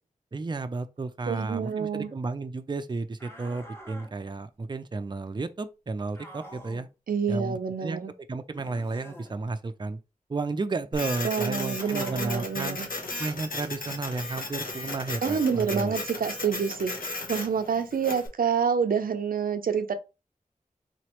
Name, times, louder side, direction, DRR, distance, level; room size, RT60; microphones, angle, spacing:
voice 1, 0.3-6.9 7.3-10.0 10.3-12.8 13.2-16.0, right 3 dB, 30° right, 0.5 m, -33 dB
voice 2, 1.3-2.1 7.1-8.1 11.2-12.9 15.2-19.9, right 6 dB, 85° right, 0.5 m, -28 dB
sound 1, 3.2-4.1 6.1-6.9 8.5-9.3 11.7-12.5, equal, 15° left, 1.4 m, -46 dB
Printer, 10.9-18.3, left 2 dB, 80° left, 1.0 m, -35 dB
4.1 x 3.1 x 2.9 m
wide cardioid pair, 55°, 14 cm